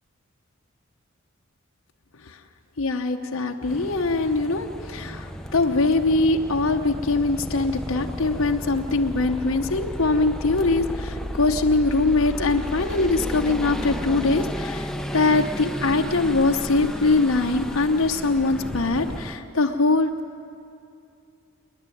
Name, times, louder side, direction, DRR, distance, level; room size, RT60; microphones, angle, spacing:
voice 1, 2.8-20.1, left 3 dB, 80° left, 4 dB, 0.9 m, -22 dB
sound 1, 3.7-19.4, equal, 5° left, 0.6 m, -33 dB
28.0 x 10.0 x 9.3 m, 2.6 s
head